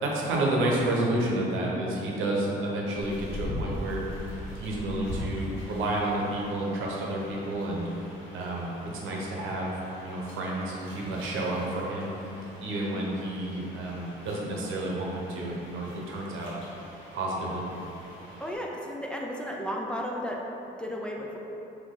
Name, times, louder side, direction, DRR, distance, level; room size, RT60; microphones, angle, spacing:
voice 1, 0.0-4.3 4.5-7.8 8.3-9.7 10.0-12.1 12.6-16.5 17.1-17.6, right 1 dB, 90° right, -3 dB, 0.8 m, -30 dB
sound 1, 3.0-18.6, left 1 dB, 70° left, 1.4 m, -42 dB
voice 2, 18.4-20.4 20.8-21.4, equal, 5° left, -2 dB, 0.4 m, -33 dB
4.2 x 2.8 x 3.6 m, 3.0 s
cardioid pair, 90°, 20 cm